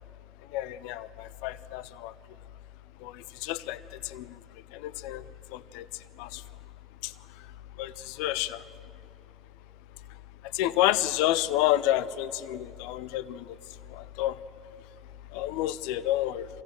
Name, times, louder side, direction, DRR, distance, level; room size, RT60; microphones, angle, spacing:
voice 1, 0.5-2.1 3.0-4.2 4.7-5.2 5.5-5.9 6.2-6.4 7.0-7.1 7.8-8.6 10.5-13.6 13.9-14.4 15.3-16.5, left 14 dB, 80° left, 15 dB, 0.5 m, -29 dB
24.5 x 16.0 x 7.5 m, 2.6 s
hypercardioid pair, 75°, 0 cm